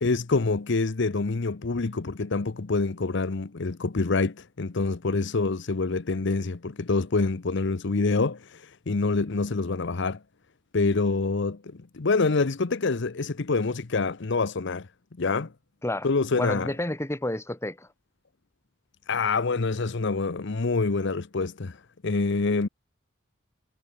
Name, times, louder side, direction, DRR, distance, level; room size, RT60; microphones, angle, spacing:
voice 1, 0.0-8.6 8.9-10.2 10.7-14.9 15.2-15.5 16.0-16.7 19.1-21.8 22.0-22.7, left 3 dB, 65° left, 0.8 m, -26 dB
voice 2, 16.4-17.9, left 1 dB, 15° left, 1.5 m, -30 dB
head